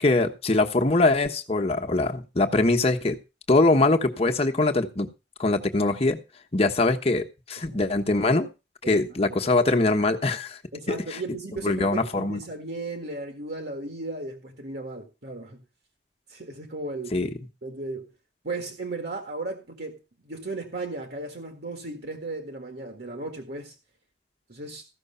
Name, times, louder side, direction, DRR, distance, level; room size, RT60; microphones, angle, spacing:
voice 1, 0.0-3.2 3.5-5.1 5.4-6.2 6.5-8.5 8.9-10.6 10.9-11.2 11.6-12.4 17.1-17.3, left 2 dB, 35° left, 1.2 m, -22 dB
voice 2, 8.8-9.4 10.7-15.6 16.3-17.2 17.6-18.1 18.4-23.8 24.5-24.9, right 2 dB, 60° right, 1.8 m, -35 dB
14.5 x 6.2 x 5.6 m
head